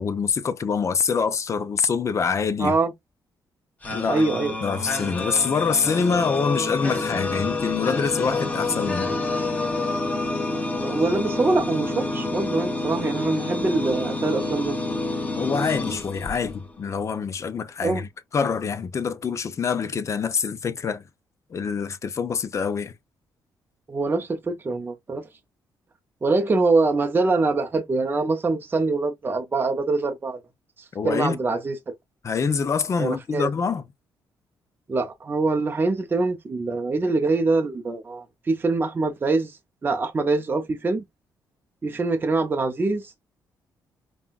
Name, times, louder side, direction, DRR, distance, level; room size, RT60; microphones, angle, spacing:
voice 1, 0.0-2.7 3.9-4.2 4.6-9.2 15.4-21.0 21.5-22.9 30.9-31.4 32.2-33.8, left 5 dB, 40° left, 0.6 m, -25 dB
voice 2, 2.6-2.9 4.1-4.5 10.8-14.8 17.8-18.0 23.9-25.2 26.2-30.4 31.0-31.9 33.0-33.5 34.9-41.0 41.8-43.1, right 3 dB, 25° right, 0.6 m, -24 dB
sound 1, 3.8-16.8, left 2 dB, 20° left, 1.2 m, -28 dB
5.5 x 2.3 x 2.4 m
cardioid pair, 130°, 8 cm